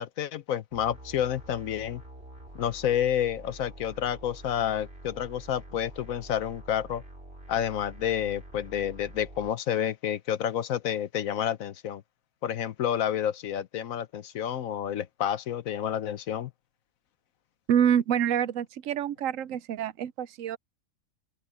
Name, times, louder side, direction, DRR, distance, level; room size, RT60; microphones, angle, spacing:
voice 1, 0.0-2.0 2.5-7.0 7.5-12.0 12.4-16.5, left 10 dB, 75° left, 1.2 m, -29 dB
sound 1, 0.7-9.5, right 1 dB, 45° right, 5.5 m, -47 dB
voice 2, 17.7-20.6, right 9 dB, 70° right, 0.9 m, -26 dB
open air
omnidirectional pair, 1.5 m